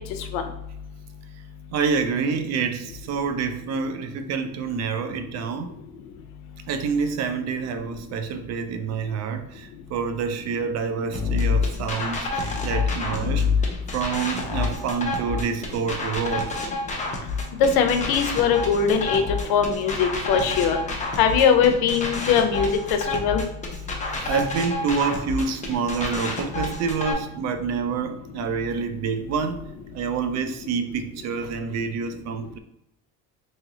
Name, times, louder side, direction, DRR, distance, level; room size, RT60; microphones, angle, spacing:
voice 1, 1.7-5.7 6.7-13.5 13.9-16.7 24.2-29.6 29.9-32.6, right 5 dB, 45° right, 8 dB, 0.4 m, -27 dB
sound 1, 11.1-27.1, left 4 dB, 20° left, 0.6 m, -28 dB
voice 2, 17.6-19.2 19.5-20.8 21.2-22.8 23.1-23.4, left 7 dB, 80° left, 5 dB, 0.7 m, -20 dB
3.1 x 2.8 x 3.8 m, 0.84 s
cardioid pair, 140°, 37 cm